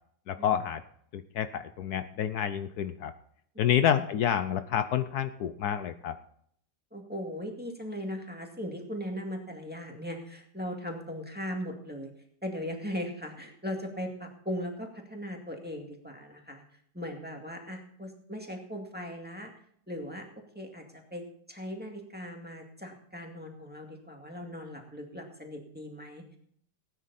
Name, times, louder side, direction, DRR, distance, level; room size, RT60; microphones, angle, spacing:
voice 1, 0.3-0.8 1.1-3.1 3.6-6.2, left 9 dB, 70° left, 11 dB, 1.2 m, -28 dB
voice 2, 6.9-12.1 12.4-16.6 16.9-19.5 19.9-20.3 20.5-20.8 21.1-21.2 21.5-26.4, equal, 5° right, 1 dB, 2.1 m, -38 dB
18.5 x 9.5 x 4.2 m, 0.65 s
omnidirectional pair, 1.8 m